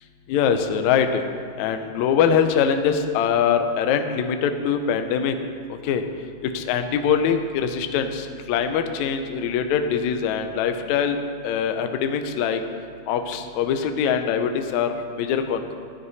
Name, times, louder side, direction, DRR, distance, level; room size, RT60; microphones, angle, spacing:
voice 1, 0.3-1.2 1.6-5.3 5.7-6.0 6.4-11.2 11.4-12.6 13.1-15.7, left 7 dB, 90° left, 6 dB, 1.6 m, -23 dB
16.0 x 11.5 x 4.2 m, 2.6 s
omnidirectional pair, 4.4 m